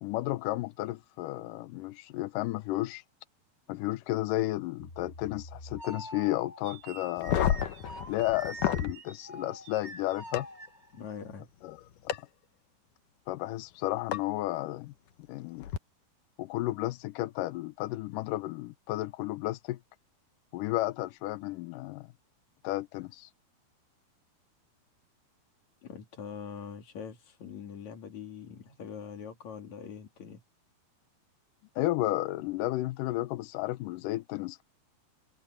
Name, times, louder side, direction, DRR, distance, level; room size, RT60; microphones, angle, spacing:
voice 1, 0.0-3.0 3.7-7.6 8.1-10.5 11.6-11.8 13.3-14.9 15.3-15.7 16.4-19.8 20.5-22.1 22.6-23.3 31.8-34.6, left 17 dB, 85° left, 1.9 m, -33 dB
sound 1, 4.8-11.2, right 1 dB, 15° left, 7.5 m, -45 dB
sound 2, 7.2-9.0 10.3-10.4 12.1-12.2 14.1-14.2 15.6-15.8, left 10 dB, 65° left, 2.3 m, -29 dB
voice 2, 10.9-11.5 25.8-30.4, left 7 dB, 50° left, 3.6 m, -43 dB
omnidirectional pair, 4.6 m